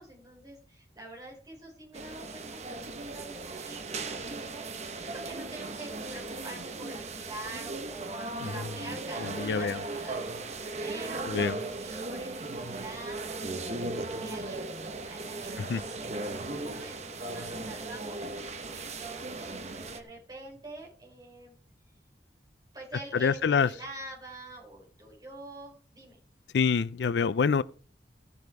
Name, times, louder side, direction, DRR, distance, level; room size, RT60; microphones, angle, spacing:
voice 1, 0.0-11.3 11.6-21.5 22.7-26.2, right 2 dB, 25° right, 4.9 m, -46 dB
sound 1, 1.9-20.0, right 2 dB, 40° right, 1.0 m, -37 dB
voice 2, 9.2-9.8 11.3-11.6 15.7-15.8 23.1-23.7 26.5-27.6, left 5 dB, 80° left, 0.4 m, -26 dB
16.0 x 7.0 x 4.7 m
head